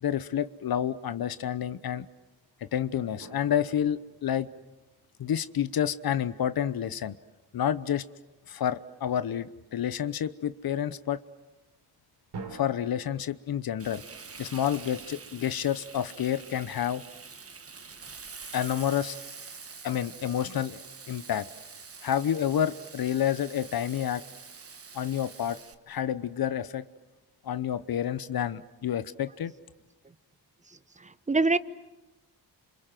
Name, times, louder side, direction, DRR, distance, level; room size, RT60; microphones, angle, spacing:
voice 1, 0.0-2.1 2.7-4.5 5.2-7.2 7.5-8.0 8.5-11.2 12.5-14.0 14.4-17.0 18.5-19.2 19.8-21.5 22.0-24.2 24.9-25.6 25.9-26.8 27.4-29.5, left 10 dB, 60° left, 14 dB, 1.0 m, -29 dB
sound 1, 3.2-5.3 12.3-13.0, right 4 dB, 75° right, 4.2 m, -45 dB
Frying (food), 13.8-25.7, right 5 dB, 35° right, 1.6 m, -46 dB
voice 2, 30.7-31.6, right 3 dB, 20° right, 15 dB, 1.0 m, -26 dB
29.0 x 27.0 x 7.7 m, 1.0 s
cardioid pair, 90°, 40 cm